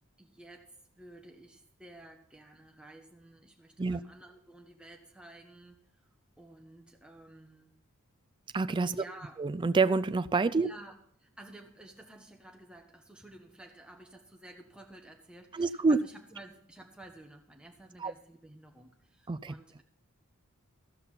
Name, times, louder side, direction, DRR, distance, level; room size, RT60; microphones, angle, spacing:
voice 1, 0.2-6.1 6.4-7.7 8.9-9.4 10.5-19.8, right 1 dB, 5° right, 1 dB, 1.3 m, -53 dB
voice 2, 8.5-9.0 9.4-10.7 15.5-16.0 18.0-18.1 19.3-19.5, right 4 dB, 20° right, 13 dB, 0.4 m, -27 dB
15.0 x 5.6 x 5.7 m, 0.66 s
head